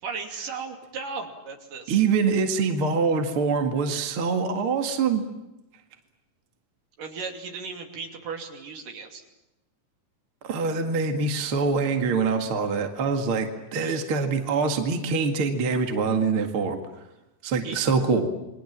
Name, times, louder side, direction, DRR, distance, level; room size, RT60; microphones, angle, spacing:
voice 1, 0.0-2.0 7.0-9.2 13.8-14.0 17.6-17.8, right 5 dB, 70° right, 3 dB, 4.4 m, -36 dB
voice 2, 1.9-5.3 10.4-16.8 17.4-18.3, right 5 dB, 45° right, 5 dB, 2.5 m, -24 dB
29.0 x 23.0 x 7.4 m, 0.96 s
omnidirectional pair, 4.0 m